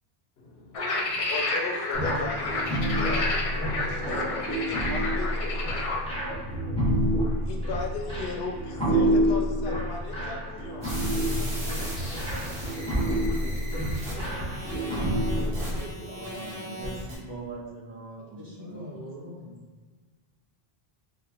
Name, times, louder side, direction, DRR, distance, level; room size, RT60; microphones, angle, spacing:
voice 1, 0.4-10.9, left 3 dB, 75° left, 1 dB, 0.8 m, -38 dB
sound 1, 0.7-6.0, left 2 dB, 55° left, 0.4 m, -30 dB
sound 2, 1.9-15.7, equal, 5° left, 0.8 m, -28 dB
sound 3, 10.8-17.1, equal, 75° right, 1.3 m, -38 dB
voice 2, 11.3-12.1 13.4-16.8 18.4-19.6, right 1 dB, 25° right, -6 dB, 1.0 m, -45 dB
voice 3, 16.1-18.8, right 2 dB, 55° right, -5 dB, 0.9 m, -41 dB
3.7 x 2.4 x 2.9 m, 1.4 s
omnidirectional pair, 1.0 m